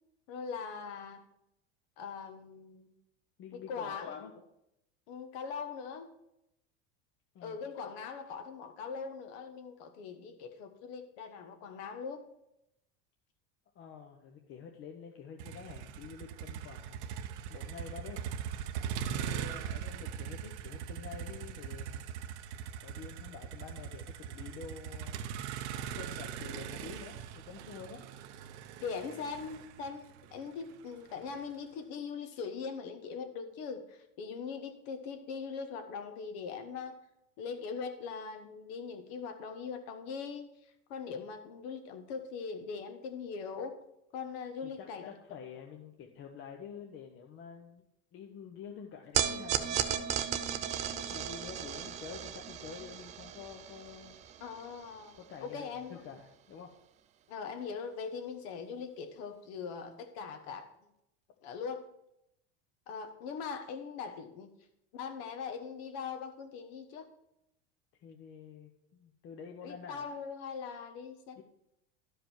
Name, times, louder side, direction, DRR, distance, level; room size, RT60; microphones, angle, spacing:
voice 1, 0.3-1.2 2.0-2.9 3.5-4.3 5.1-6.1 7.4-12.2 18.9-19.2 28.8-37.0 37.4-43.8 44.1-45.1 54.4-56.0 57.3-60.7 61.4-61.8 62.9-64.5 64.9-67.1 69.6-71.4, left 5 dB, 65° left, 8 dB, 1.3 m, -41 dB
voice 2, 3.4-4.3 7.3-7.6 13.7-17.1 17.5-18.2 19.1-22.2 22.8-25.2 25.7-28.0 44.6-47.8 48.1-54.2 55.2-56.7 68.0-70.1 71.4-71.5, left 6 dB, 40° left, 2 dB, 0.8 m, -48 dB
Motor vehicle (road), 15.4-31.5, right 8 dB, 90° right, 0.8 m, -41 dB
sound 1, 49.1-55.5, right 9 dB, 20° right, 0.3 m, -36 dB
12.0 x 5.0 x 4.4 m, 0.82 s
supercardioid pair, 150°, 34 cm